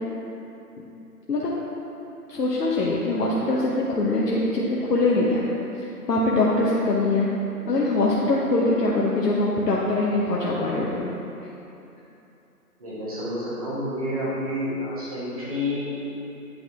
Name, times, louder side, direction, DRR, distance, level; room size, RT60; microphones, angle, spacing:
voice 1, 2.3-5.5 5.8-7.3 7.6-11.1, left 2 dB, 80° left, -5 dB, 1.1 m, -23 dB
voice 2, 12.8-15.9, left 1 dB, 25° right, -9 dB, 1.3 m, -29 dB
10.0 x 3.7 x 3.5 m, 2.9 s
figure-of-eight pair, 165°, 48 cm